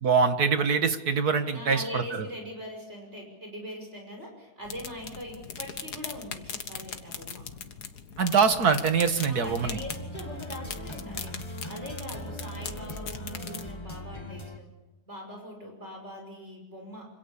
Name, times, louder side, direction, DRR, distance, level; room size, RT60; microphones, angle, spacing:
voice 1, 0.0-2.0 8.2-9.8, right 5 dB, 70° right, 8 dB, 2.2 m, -24 dB
voice 2, 1.5-7.4 9.3-14.7 15.1-17.1, equal, 40° right, 1 dB, 5.9 m, -42 dB
sound 1, 4.7-13.7, left 6 dB, 75° left, 2.0 m, -40 dB
sound 2, 9.4-14.6, equal, 20° left, 1.5 m, -40 dB
26.5 x 26.5 x 7.1 m, 1.1 s
omnidirectional pair, 1.7 m